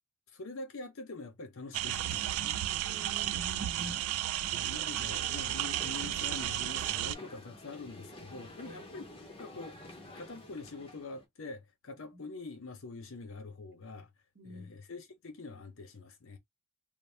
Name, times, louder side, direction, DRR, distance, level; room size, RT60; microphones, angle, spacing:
voice 1, 0.3-2.6 3.8-4.0 4.5-9.1 9.4-14.1 14.4-16.4, left 3 dB, 65° left, 0.7 m, -45 dB
sound 1, 1.7-7.1, right 13 dB, 85° right, 0.3 m, -33 dB
voice 2, 2.8-3.9 8.6-8.8 14.3-14.8, right 1 dB, 50° right, 0.9 m, -46 dB
sound 2, 5.1-11.2, left 1 dB, 25° left, 0.7 m, -49 dB
2.5 x 2.0 x 3.2 m
head